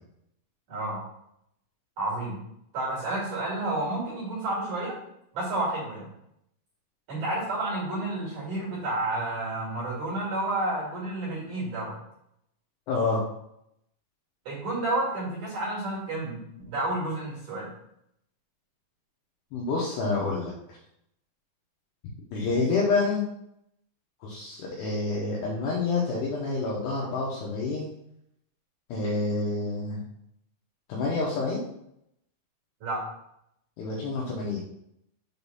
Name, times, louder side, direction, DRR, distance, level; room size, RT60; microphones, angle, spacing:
voice 1, 0.7-1.0 2.0-2.4 2.7-5.0 5.3-6.1 7.1-12.0 14.4-17.7 32.8-33.0, right 2 dB, 50° right, -5 dB, 3.3 m, -30 dB
voice 2, 12.9-13.2 19.5-20.5 22.3-23.2 24.2-27.9 28.9-30.0 30.9-31.6 33.8-34.6, left 3 dB, 70° left, -4 dB, 2.9 m, -28 dB
7.2 x 3.9 x 5.5 m, 0.77 s
omnidirectional pair, 5.4 m